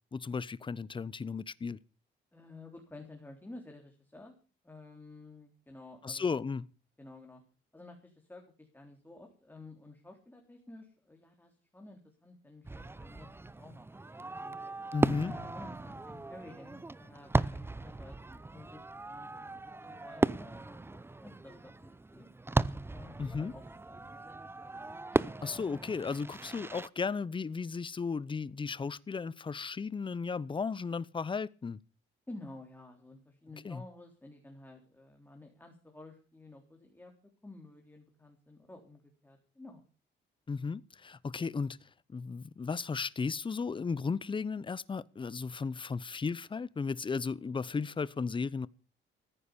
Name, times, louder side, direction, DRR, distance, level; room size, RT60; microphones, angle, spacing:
voice 1, 0.1-1.8 6.0-6.7 14.9-15.3 23.2-23.5 25.1-31.8 33.6-33.8 40.5-48.7, left 5 dB, 25° left, 0.7 m, -35 dB
voice 2, 2.3-4.4 4.6-6.3 7.0-7.4 7.7-14.6 15.2-22.3 22.9-24.4 32.3-37.1 37.4-39.8, left 2 dB, 10° left, 3.6 m, -52 dB
Fireworks, 12.6-26.9, right 2 dB, 10° right, 0.6 m, -36 dB
14.5 x 10.0 x 6.8 m
cardioid pair, 90°, 20 cm